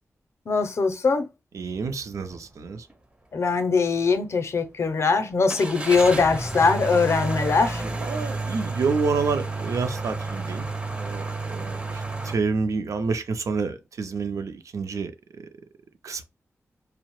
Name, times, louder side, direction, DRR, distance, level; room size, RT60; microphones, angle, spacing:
voice 1, 0.5-1.3 3.3-7.8, left 4 dB, 60° left, 0.4 m, -21 dB
voice 2, 1.5-2.9 7.8-10.7 11.0-15.5 16.0-16.2, right 4 dB, 80° right, 0.4 m, -29 dB
sound 1, 2.2-2.4 2.9-3.0 5.5-12.3, right 3 dB, 20° right, 0.4 m, -31 dB
2.7 x 2.0 x 2.9 m
wide cardioid pair, 105°, 5 cm